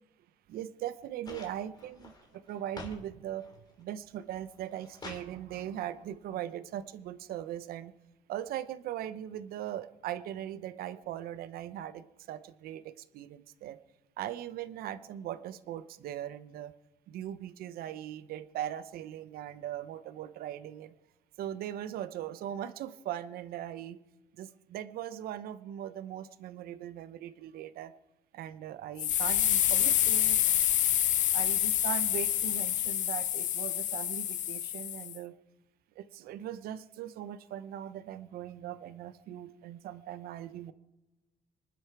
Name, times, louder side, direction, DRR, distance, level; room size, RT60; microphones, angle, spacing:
voice 1, 0.5-3.5 3.8-7.9 8.3-13.8 14.2-16.7 17.1-20.9 21.4-24.0 24.4-27.9 28.3-30.4 31.3-35.4 36.0-40.7, right 11 dB, 70° right, 13 dB, 0.9 m, -40 dB
sound 1, 1.3-3.0 3.4-3.9 4.4-5.3 6.5-6.6, left 3 dB, 25° left, 2.7 m, -47 dB
sound 2, 29.0-35.2, left 12 dB, 55° left, 0.6 m, -28 dB
26.0 x 11.5 x 4.8 m, 1.1 s
cardioid pair, 145°, 16 cm